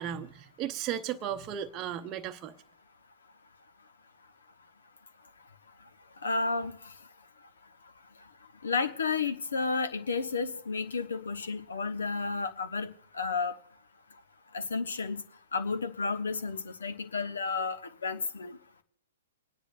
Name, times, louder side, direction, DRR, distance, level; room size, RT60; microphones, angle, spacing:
voice 1, 0.0-2.5, right 10 dB, 30° right, 0.7 m, -35 dB
voice 2, 6.2-6.8 8.6-13.5 14.5-15.2 15.5-18.6, left 4 dB, 75° left, 1.1 m, -32 dB
30.0 x 10.0 x 2.5 m
hypercardioid pair, 115°, 0 cm